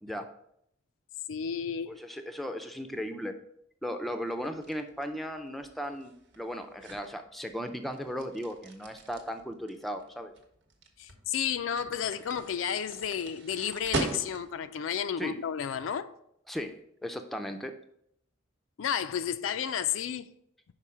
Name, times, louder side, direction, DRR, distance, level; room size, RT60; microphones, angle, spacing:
voice 1, 1.3-2.0 11.0-16.1 18.8-20.3, left 8 dB, 70° left, 0.4 m, -32 dB
voice 2, 1.9-3.4 3.8-10.3 15.2-15.4 16.5-17.7, equal, ahead, 0.4 m, -36 dB
sound 1, 4.3-14.7, right 2 dB, 60° right, 1.0 m, -40 dB
5.6 x 4.5 x 4.8 m
head